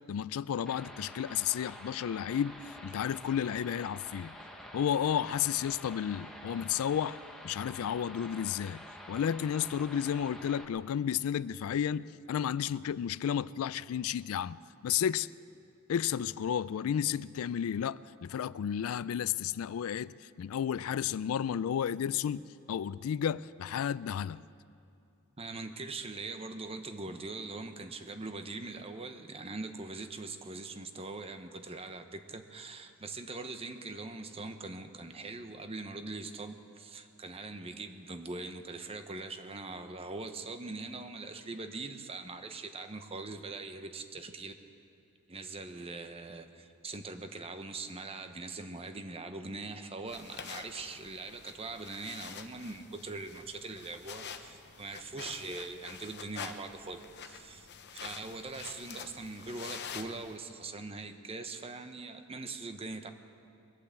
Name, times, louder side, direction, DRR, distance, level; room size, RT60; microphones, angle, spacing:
voice 1, 0.1-4.4 4.7-7.2 7.4-15.3 15.9-24.5, left 9 dB, 75° left, 0.3 m, -32 dB
sound 1, 0.7-10.7, equal, ahead, 1.1 m, -48 dB
voice 2, 25.4-44.5 45.3-57.7 58.0-63.1, right 3 dB, 25° right, 0.9 m, -42 dB
sound 2, 50.1-60.4, left 6 dB, 50° left, 0.8 m, -47 dB
22.5 x 8.6 x 7.4 m
head